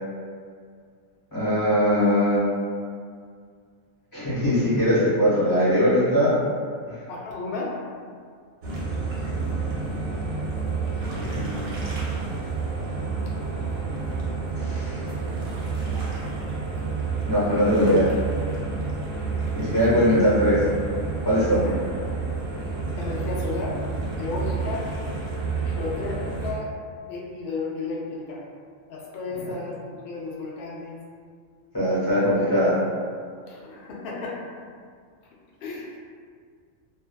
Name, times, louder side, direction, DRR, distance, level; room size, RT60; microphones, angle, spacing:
voice 1, 1.3-2.5 4.1-6.3 6.9-7.0 11.1-11.9 14.6-15.1 17.2-18.1 19.5-20.6 21.2-21.7 31.7-32.8, equal, 15° left, -11 dB, 0.9 m, -21 dB
voice 2, 7.1-7.7 19.9-20.0 21.6-21.8 22.6-23.8 24.2-24.9 25.6-26.7 27.1-28.4 28.9-31.0 33.5-34.4 35.6-36.0, left 3 dB, 65° left, -4 dB, 0.5 m, -33 dB
sound 1, 8.6-26.5, right 4 dB, 65° right, 0.9 m, -29 dB
2.5 x 2.2 x 2.2 m, 2.1 s
omnidirectional pair, 1.4 m